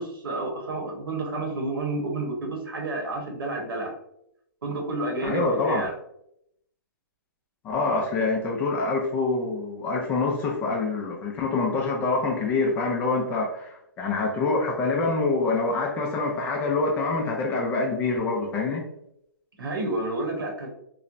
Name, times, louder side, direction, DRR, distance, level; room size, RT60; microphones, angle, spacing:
voice 1, 0.0-4.0 4.6-5.9 19.6-20.8, right 2 dB, 90° right, 0 dB, 1.0 m, -30 dB
voice 2, 5.2-5.8 7.6-18.9, left 3 dB, 15° left, 0 dB, 0.3 m, -26 dB
3.0 x 2.1 x 2.4 m, 0.77 s
hypercardioid pair, 150°, 11 cm